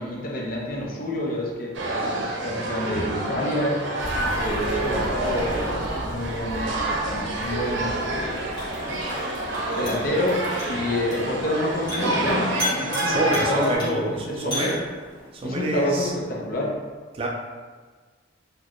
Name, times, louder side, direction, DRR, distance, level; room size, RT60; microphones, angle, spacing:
voice 1, 0.0-3.8 4.3-8.5 9.8-14.7 15.4-16.7, left 1 dB, 50° left, -2 dB, 0.6 m, -28 dB
sound 1, 1.7-13.8, right 1 dB, 70° right, 0.6 m, -28 dB
sound 2, 4.0-11.7, equal, 80° left, 1.0 m, -37 dB
sound 3, 7.3-15.3, left 1 dB, 25° left, 1.2 m, -34 dB
voice 2, 13.0-14.8 15.3-16.1 17.1-17.3, right 2 dB, 30° right, 0 dB, 0.4 m, -27 dB
4.1 x 2.2 x 3.0 m, 1.5 s
head